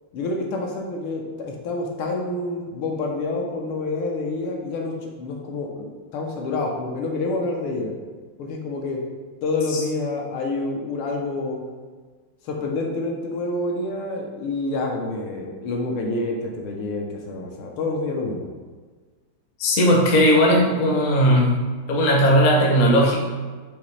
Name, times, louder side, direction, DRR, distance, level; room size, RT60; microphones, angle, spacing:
voice 1, 0.1-5.8 6.1-7.9 8.4-9.1 9.4-11.6 12.4-18.5, left 2 dB, 80° left, 0 dB, 1.6 m, -28 dB
voice 2, 19.6-21.5 21.9-23.1, equal, 55° left, -2 dB, 0.9 m, -17 dB
5.5 x 2.8 x 3.1 m, 1.5 s
omnidirectional pair, 2.4 m